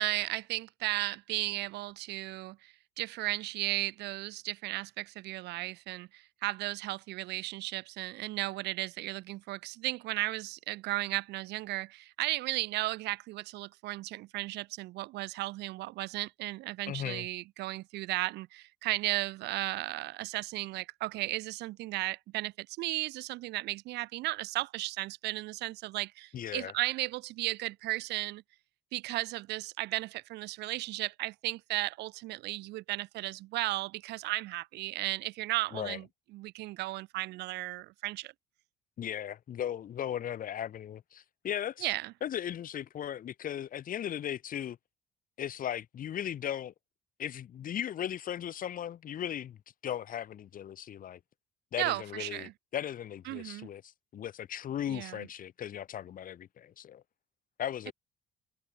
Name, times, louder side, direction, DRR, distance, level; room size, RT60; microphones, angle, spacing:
voice 1, 0.0-28.4 28.9-36.1 36.3-38.3 41.8-42.1 51.8-52.5 53.3-53.7 54.9-55.3, right 18 dB, 85° right, 2.8 m, -35 dB
voice 2, 16.9-17.3 26.3-26.7 35.7-36.0 39.0-41.9 42.2-44.8 45.4-46.7 47.2-51.2 51.7-53.8 54.1-57.0 57.6-57.9, left 10 dB, 55° left, 5.1 m, -37 dB
cardioid pair, 110°, 17 cm